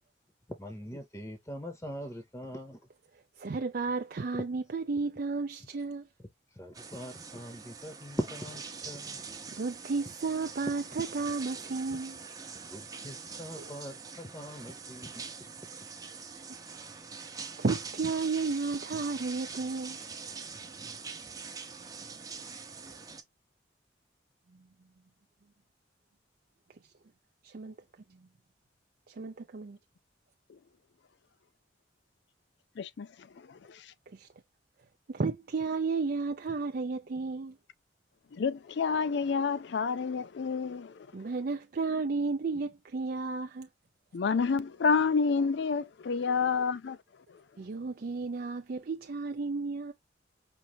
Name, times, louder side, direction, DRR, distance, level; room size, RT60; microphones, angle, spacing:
voice 1, 0.6-2.8 4.3-4.4 6.2-9.2 11.9-12.0 12.6-15.5 15.8-15.9, equal, 15° left, 0.8 m, -41 dB
voice 2, 3.4-6.0 9.6-12.2 13.6-13.7 16.3-16.4 17.6-20.0 27.4-27.7 29.1-29.8 34.1-34.3 35.1-37.6 41.1-43.7 47.6-49.9, right 4 dB, 55° right, 0.5 m, -33 dB
sound 1, 6.7-23.2, right 5 dB, 20° right, 0.7 m, -44 dB
voice 3, 32.8-33.9 38.3-41.1 44.1-47.0 47.3-47.4, left 5 dB, 65° left, 0.4 m, -29 dB
5.3 x 2.7 x 2.9 m
head